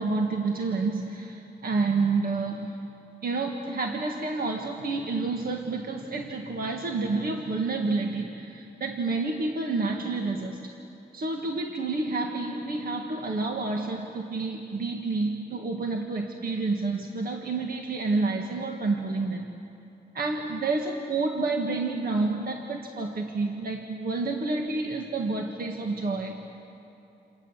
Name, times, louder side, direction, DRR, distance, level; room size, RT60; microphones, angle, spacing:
voice 1, 0.0-2.8 3.2-10.7 11.1-19.5 20.1-26.4, right 3 dB, 55° right, 2 dB, 1.8 m, -29 dB
29.0 x 28.0 x 7.3 m, 2.8 s
wide cardioid pair, 120°, 18 cm